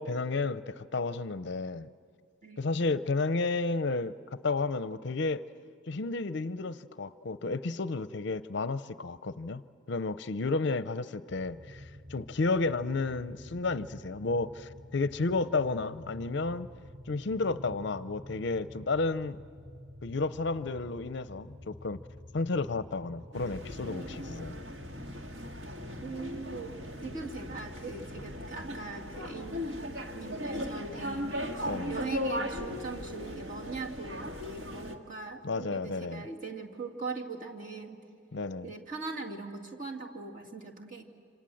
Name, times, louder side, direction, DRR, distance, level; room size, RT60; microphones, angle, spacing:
voice 1, 0.0-1.9 2.6-4.1 4.4-5.4 5.9-9.6 9.9-16.7 17.1-19.4 20.0-22.0 22.3-24.6 31.6-32.0 35.4-36.3 38.3-38.7, left 3 dB, 55° left, 14 dB, 0.6 m, -32 dB
voice 2, 2.4-2.7 26.0-26.7 27.0-29.6 30.1-31.3 31.6-38.0 38.6-41.0, right 4 dB, 40° right, 0 dB, 2.4 m, -40 dB
sound 1, 11.3-28.7, left 1 dB, 15° right, 1.0 m, -49 dB
sound 2, 23.3-35.0, left 1 dB, 60° right, 1.8 m, -38 dB
27.5 x 26.5 x 7.8 m, 2.2 s
head